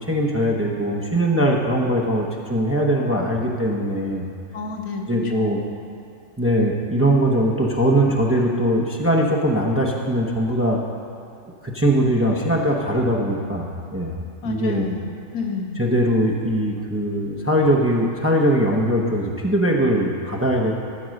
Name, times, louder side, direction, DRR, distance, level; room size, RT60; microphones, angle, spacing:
voice 1, 0.0-4.3 5.1-5.6 6.4-10.8 11.6-13.7 13.9-14.2 14.4-14.9 15.8-20.7, right 1 dB, 10° right, -2 dB, 0.7 m, -21 dB
voice 2, 4.5-5.7 14.4-15.9, left 4 dB, 85° left, 3 dB, 1.4 m, -30 dB
14.0 x 4.7 x 6.4 m, 2.6 s
omnidirectional pair, 1.4 m